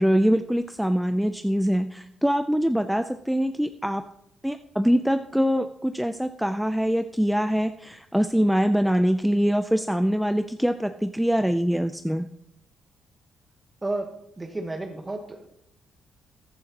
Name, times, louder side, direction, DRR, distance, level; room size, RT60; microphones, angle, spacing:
voice 1, 0.0-4.0 4.4-12.3, equal, ahead, 8 dB, 0.4 m, -23 dB
voice 2, 14.4-15.5, right 2 dB, 20° right, 4 dB, 1.1 m, -31 dB
14.5 x 10.5 x 2.9 m, 0.79 s
cardioid pair, 90°, 0 cm